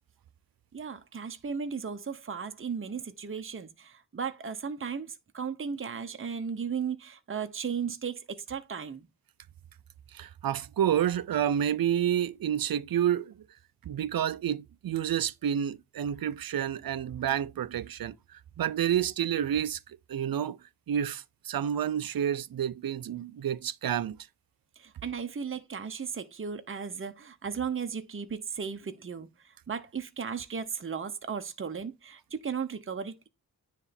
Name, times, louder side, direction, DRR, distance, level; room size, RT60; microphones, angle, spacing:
voice 1, 0.7-9.1 24.8-33.3, right 6 dB, 35° right, 1.0 m, -36 dB
voice 2, 10.1-13.3 13.9-18.1 18.6-19.8 20.1-20.6 20.9-24.2, right 10 dB, 80° right, 0.7 m, -29 dB
9.8 x 3.4 x 4.2 m
wide cardioid pair, 95°, 35 cm